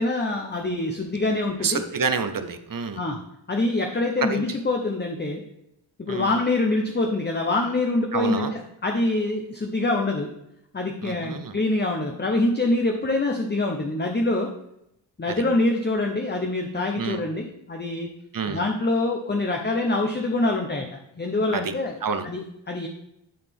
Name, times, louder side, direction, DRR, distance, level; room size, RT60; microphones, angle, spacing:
voice 1, 0.0-1.8 3.0-3.2 3.5-5.4 6.0-10.3 10.7-14.5 15.2-18.1 18.5-21.9 22.2-22.9, left 2 dB, 20° left, 2 dB, 0.8 m, -25 dB
voice 2, 1.6-3.0 4.2-4.4 6.1-6.3 8.1-8.5 11.0-11.6 15.3-15.4 17.0-17.2 18.3-18.6 21.5-21.7 22.0-22.3, right 5 dB, 45° right, 9 dB, 0.8 m, -28 dB
10.5 x 4.1 x 3.5 m, 0.81 s
cardioid pair, 55°, 49 cm